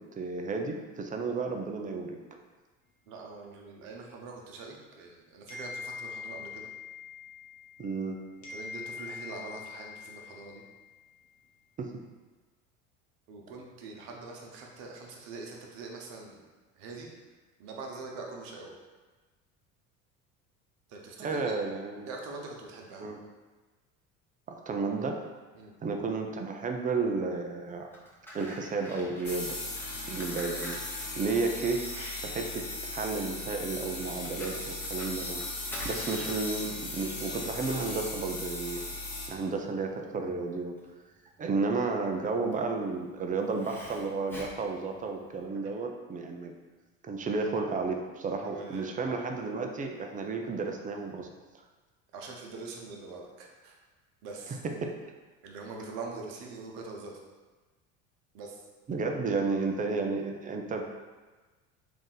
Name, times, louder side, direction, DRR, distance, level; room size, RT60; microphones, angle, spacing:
voice 1, 0.2-2.2 7.8-8.2 11.8-11.9 21.2-22.1 23.0-23.2 24.5-25.2 25.8-27.9 28.3-29.6 30.1-30.8 31.1-32.6 32.9-35.4 35.8-38.8 39.3-40.8 41.4-46.5 47.0-51.3 54.8-54.9 58.9-60.8, right 4 dB, 20° right, 3 dB, 0.4 m, -32 dB
voice 2, 3.1-6.7 8.5-10.6 13.3-16.4 16.8-17.1 17.6-18.7 20.9-21.6 22.1-23.1 25.5-25.7 48.3-49.1 52.1-53.8 54.2-54.6 55.4-57.1 58.3-58.6, right 3 dB, 60° right, 0 dB, 0.9 m, -43 dB
sound 1, 5.5-8.1 8.4-11.0, left 5 dB, 45° left, 0.9 m, -43 dB
Fire, 27.7-45.5, equal, 5° left, 0.8 m, -47 dB
sound 2, 29.2-39.3, left 2 dB, 25° left, 1.1 m, -37 dB
3.5 x 2.5 x 3.9 m, 1.3 s
hypercardioid pair, 75°, 40 cm